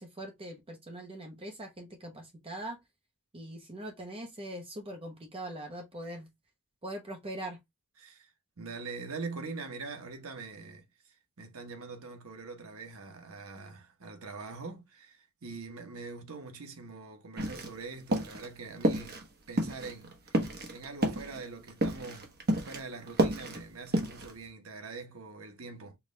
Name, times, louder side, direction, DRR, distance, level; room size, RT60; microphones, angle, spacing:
voice 1, 0.0-2.8 3.3-6.3 6.8-7.6, right 1 dB, 25° right, 0.8 m, -42 dB
voice 2, 8.0-8.3 8.6-26.0, right 4 dB, 70° right, 1.1 m, -44 dB
sound 1, 17.4-17.8 18.1-18.5 18.8-19.3 19.6-22.8 23.1-24.4, right 1 dB, 45° right, 1.1 m, -30 dB
4.8 x 2.4 x 3.1 m
head